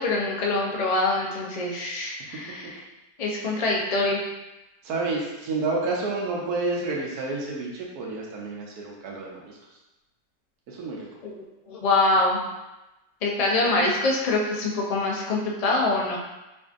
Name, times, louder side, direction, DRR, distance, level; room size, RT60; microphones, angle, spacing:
voice 1, 0.0-2.7 3.2-4.2 11.2-11.3 11.7-12.4 13.2-16.2, left 2 dB, 70° left, -2 dB, 0.3 m, -24 dB
voice 2, 4.8-9.6 10.7-11.2, right 3 dB, 85° right, -2 dB, 1.2 m, -30 dB
4.7 x 2.6 x 2.5 m, 1.0 s
omnidirectional pair, 1.6 m